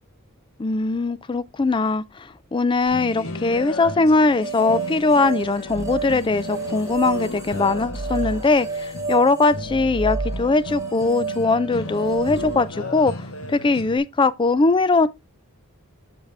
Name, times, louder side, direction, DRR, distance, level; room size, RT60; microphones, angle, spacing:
voice 1, 0.6-15.1, left 3 dB, 20° left, 0.4 m, -21 dB
sound 1, 2.9-14.0, left 2 dB, 70° left, 1.3 m, -35 dB
sound 2, 4.4-12.7, right 4 dB, 15° right, 1.3 m, -30 dB
7.2 x 6.3 x 3.3 m
head